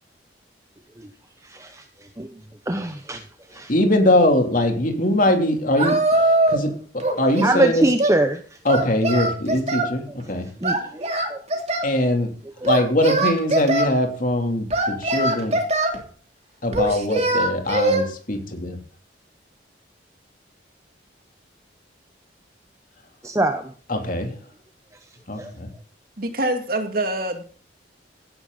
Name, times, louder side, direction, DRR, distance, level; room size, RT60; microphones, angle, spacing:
voice 1, 1.5-1.8 2.2-2.3 2.7-3.2 3.5-3.7 6.3-6.4 7.4-8.4 10.6-11.0 11.3-11.4 23.2-23.6 25.4-25.5, right 1 dB, 15° right, 7 dB, 0.9 m, -22 dB
voice 2, 3.7-7.9 8.6-10.5 11.8-12.3 12.6-15.5 16.6-18.8 23.9-24.3 25.3-25.7, left 1 dB, 45° left, 4 dB, 3.0 m, -22 dB
Singing, 5.8-6.7 7.0-8.2 8.7-9.9 10.6-11.9 12.6-13.9 14.7-16.0 16.7-18.1, right 2 dB, 35° right, 2.7 m, -22 dB
voice 3, 26.2-27.4, right 1 dB, 50° right, 6 dB, 2.3 m, -25 dB
16.0 x 11.0 x 4.0 m, 0.42 s
head